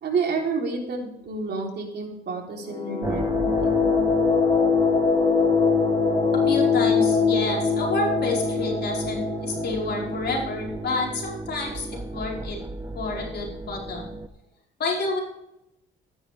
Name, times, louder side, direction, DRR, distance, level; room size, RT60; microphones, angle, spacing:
voice 1, 0.0-3.7, right 4 dB, 55° right, 0 dB, 3.7 m, -29 dB
sound 1, 2.6-11.2, left 5 dB, 30° left, 1.8 m, -23 dB
sound 2, 3.0-14.3, right 3 dB, 15° right, 0.5 m, -32 dB
voice 2, 6.4-12.6 12.9-14.0 14.8-15.2, left 3 dB, 55° left, -2 dB, 5.0 m, -29 dB
13.5 x 10.5 x 3.5 m, 0.83 s
cardioid pair, 90°, 20 cm